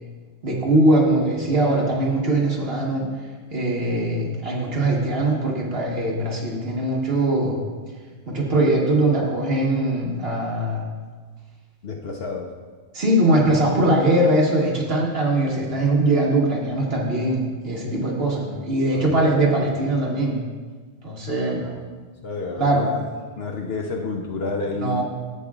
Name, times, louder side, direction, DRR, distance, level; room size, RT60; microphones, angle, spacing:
voice 1, 0.4-3.1 3.5-7.6 8.3-10.9 12.9-20.4 21.0-21.6 22.6-22.9 24.7-25.0, right 1 dB, 50° right, -2 dB, 1.6 m, -21 dB
voice 2, 11.8-12.5 18.9-19.1 21.6-21.7 22.2-23.0 23.4-25.0, left 3 dB, 55° left, 1 dB, 0.9 m, -30 dB
11.5 x 8.3 x 2.4 m, 1.4 s
omnidirectional pair, 1.3 m